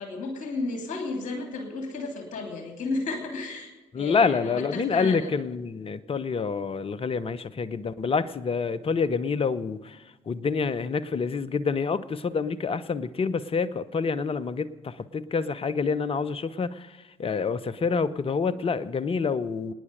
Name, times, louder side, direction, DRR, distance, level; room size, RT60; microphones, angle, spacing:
voice 1, 0.0-5.3, left 3 dB, 55° left, 3 dB, 3.0 m, -33 dB
voice 2, 3.9-19.7, left 5 dB, 40° left, 16 dB, 0.8 m, -27 dB
26.0 x 9.8 x 5.1 m, 1.1 s
figure-of-eight pair, 40°, 15 cm